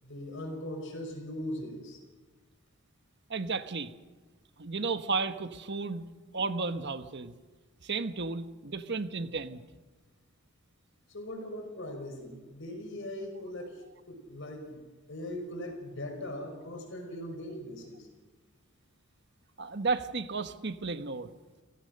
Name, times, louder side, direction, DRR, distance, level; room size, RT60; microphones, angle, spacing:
voice 1, 0.0-2.0 11.1-14.8 15.1-18.1, left 1 dB, 60° left, 4 dB, 5.6 m, -40 dB
voice 2, 3.3-3.9 4.6-6.0 6.3-7.3 7.8-9.6 19.6-21.3, right 4 dB, 55° right, 10 dB, 1.2 m, -33 dB
30.0 x 16.5 x 6.5 m, 1.3 s
head